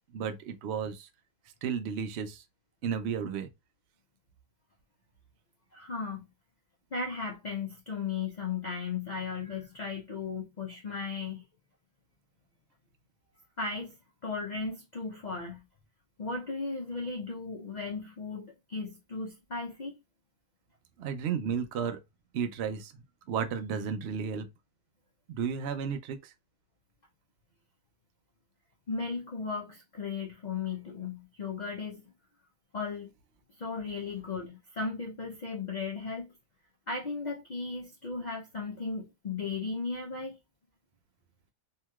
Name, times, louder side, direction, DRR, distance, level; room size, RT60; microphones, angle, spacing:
voice 1, 0.1-1.1 1.6-2.4 2.8-3.5 21.0-22.0 22.3-22.9 23.3-24.5 25.3-26.3, right 7 dB, 70° right, 0.6 m, -33 dB
voice 2, 5.7-6.2 6.9-11.4 13.6-14.0 14.2-15.6 16.2-19.9 28.9-32.1 32.7-33.1 33.6-36.3 36.9-40.4, left 4 dB, 80° left, 0.4 m, -36 dB
3.0 x 2.8 x 2.2 m
omnidirectional pair, 1.6 m